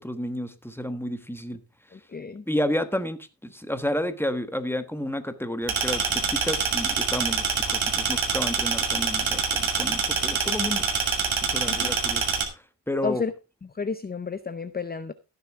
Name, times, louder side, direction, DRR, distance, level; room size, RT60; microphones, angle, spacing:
voice 1, 0.0-1.6 2.5-10.9 11.4-12.3 12.9-13.2, left 1 dB, 5° left, 1.3 m, -31 dB
voice 2, 1.9-2.4 11.7-11.9 13.0-13.3 13.8-15.1, left 5 dB, 20° left, 0.6 m, -31 dB
sound 1, 5.7-12.4, right 5 dB, 80° right, 2.5 m, -25 dB
16.0 x 6.9 x 3.5 m
cardioid pair, 80°, 46 cm